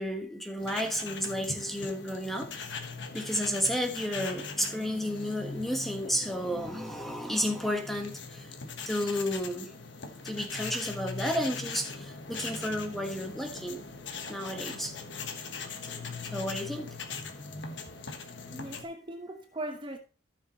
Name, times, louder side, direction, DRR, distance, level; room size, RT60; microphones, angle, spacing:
voice 1, 0.0-2.5 3.1-8.5 8.8-9.7 10.2-13.8 14.3-15.0 16.2-17.0, equal, ahead, 1.2 m, -32 dB
sound 1, 0.6-18.8, left 4 dB, 65° left, 1.3 m, -41 dB
voice 2, 18.5-20.0, right 1 dB, 25° right, 1.0 m, -39 dB
14.0 x 6.6 x 3.0 m
head